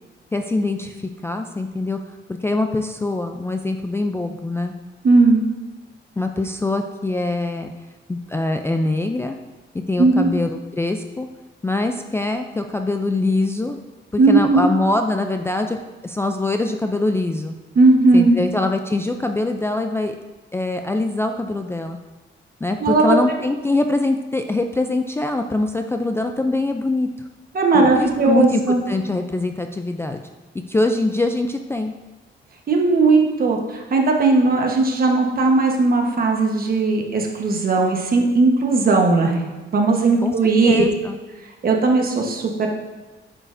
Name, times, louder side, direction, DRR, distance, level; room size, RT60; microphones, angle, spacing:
voice 1, 0.3-2.0 2.4-4.8 6.2-7.7 8.1-9.4 9.9-11.3 11.6-13.8 14.1-15.8 16.0-17.5 18.1-20.2 20.5-22.0 22.6-27.1 27.7-30.2 30.7-31.9 40.2-40.3 40.6-41.2, left 2 dB, 10° left, 5 dB, 0.3 m, -23 dB
voice 2, 5.0-5.5 10.0-10.3 14.2-14.7 17.7-18.3 22.8-23.2 27.5-28.8 32.7-39.4 39.7-40.9 41.6-42.7, right 3 dB, 45° right, 1 dB, 1.2 m, -17 dB
9.0 x 6.2 x 2.6 m, 1.2 s
cardioid pair, 125°, 20 cm